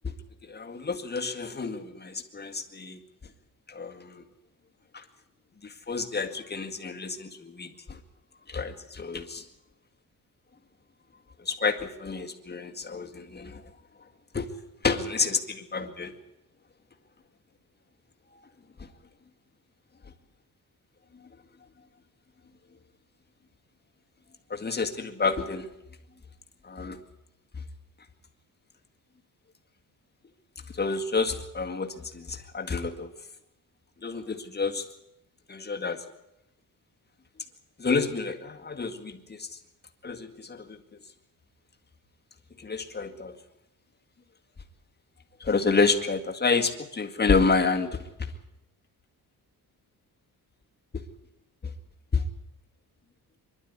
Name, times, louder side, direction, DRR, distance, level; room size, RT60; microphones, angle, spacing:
voice 1, 0.4-3.0 3.7-4.2 4.9-5.0 5.6-8.0 8.5-9.4 11.4-13.6 14.3-14.5 14.8-16.1 24.5-25.7 26.6-27.0 30.7-33.1 34.0-34.9 35.5-36.0 37.8-39.5 40.0-40.8 42.6-43.4 45.4-48.3 52.1-52.2, left 4 dB, 25° left, 5 dB, 2.0 m, -29 dB
24.5 x 12.0 x 9.6 m, 0.88 s
cardioid pair, 125°, 37 cm